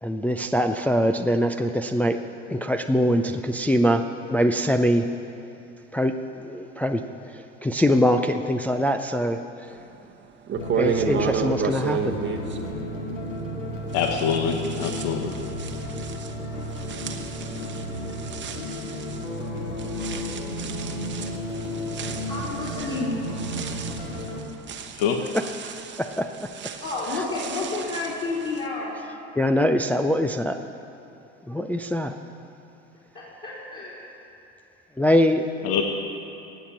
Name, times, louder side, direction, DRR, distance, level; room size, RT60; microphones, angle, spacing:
voice 1, 0.0-2.2 2.5-4.0 4.3-5.1 5.9-6.1 6.4-9.4 10.7-12.2 25.3-25.4 26.0-26.5 29.4-30.6 31.5-32.2 35.0-35.5, equal, 5° left, 5 dB, 0.4 m, -23 dB
sound 1, 9.9-10.0 10.5-13.6 13.9-28.7, right 6 dB, 30° right, 1.0 m, -33 dB
sound 2, 10.6-24.4, equal, 75° left, 2.6 m, -33 dB
voice 2, 13.9-15.4 25.0-25.2 35.6-35.8, left 7 dB, 55° left, 4 dB, 1.2 m, -25 dB
voice 3, 22.3-23.2 26.8-28.9 33.1-34.1, left 3 dB, 35° left, -8 dB, 3.7 m, -30 dB
18.0 x 7.3 x 7.4 m, 2.8 s
hypercardioid pair, 80°, 38 cm